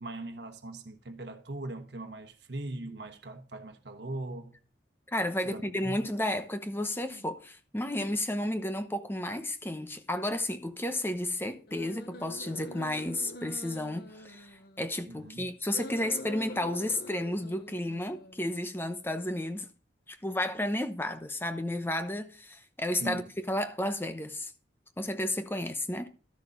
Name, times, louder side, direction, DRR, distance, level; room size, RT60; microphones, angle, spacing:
voice 1, 0.0-4.6 5.4-6.0 15.1-15.5 23.0-23.3, right 2 dB, 75° right, 1.2 m, -40 dB
voice 2, 5.1-19.7 20.1-24.5 25.0-26.1, left 1 dB, 10° left, 0.9 m, -32 dB
sound 1, 7.0-7.3 7.9-8.0 11.7-15.0 15.6-18.6, left 2 dB, 55° left, 1.0 m, -45 dB
13.0 x 6.7 x 5.2 m
head